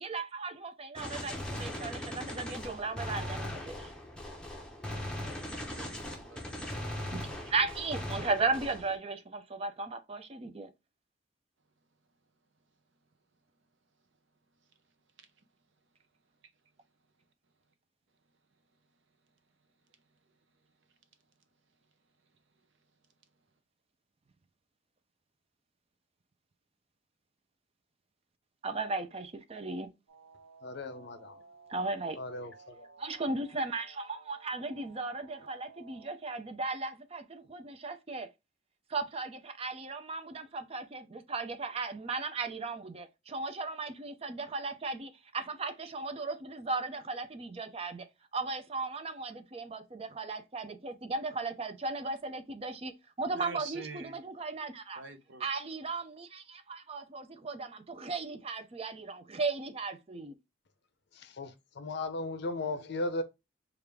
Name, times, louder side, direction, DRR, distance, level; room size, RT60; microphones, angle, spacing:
voice 1, 0.0-3.9 7.1-10.7 28.6-29.9 31.7-32.2 33.0-38.3 38.9-48.1 48.3-55.0 55.4-60.4, right 3 dB, 30° right, 0.5 m, -36 dB
Gunshot gunfire, 1.0-9.0, left 1 dB, 5° left, 0.9 m, -39 dB
voice 2, 5.3-6.6 15.2-15.3 53.3-54.2 55.0-55.6, right 4 dB, 60° right, 0.7 m, -46 dB
sound 1, 30.1-36.1, right 4 dB, 80° right, 1.0 m, -56 dB
voice 3, 30.6-31.4 32.2-32.9 61.1-63.2, left 2 dB, 55° left, 0.6 m, -36 dB
4.9 x 2.4 x 3.4 m
head